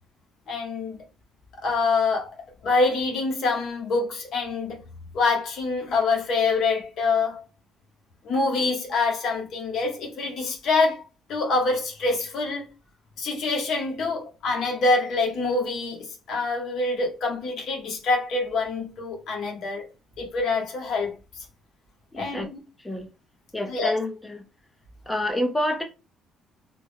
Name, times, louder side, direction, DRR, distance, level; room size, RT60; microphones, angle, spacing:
voice 1, 0.5-1.0 1.6-2.3 2.6-4.8 5.1-7.4 8.2-11.0 11.3-12.7 13.2-19.9 20.2-21.1 22.2-22.6 23.7-24.0, left 3 dB, 50° left, 1.0 m, -25 dB
voice 2, 22.1-22.5 22.8-23.1 23.5-24.4 25.1-25.8, left 1 dB, 5° left, 0.5 m, -28 dB
3.3 x 2.1 x 3.3 m
cardioid pair, 160°, 0 cm